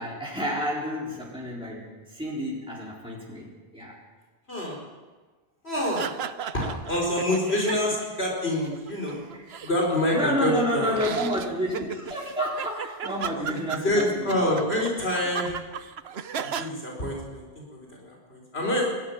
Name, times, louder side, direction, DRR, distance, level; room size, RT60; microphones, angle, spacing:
voice 1, 0.0-3.9 7.6-7.7 9.3-9.4 10.1-14.5, equal, 5° right, -6 dB, 4.4 m, -30 dB
voice 2, 4.5-4.8 5.6-6.1 6.5-9.2 9.6-11.0 13.4-15.6 16.6-18.9, left 1 dB, 80° left, -1 dB, 5.1 m, -27 dB
sound 1, 5.7-8.1 8.4-10.4 10.9-16.7, right 7 dB, 80° right, 1.1 m, -36 dB
21.5 x 14.5 x 9.8 m, 1.3 s
omnidirectional pair, 1.1 m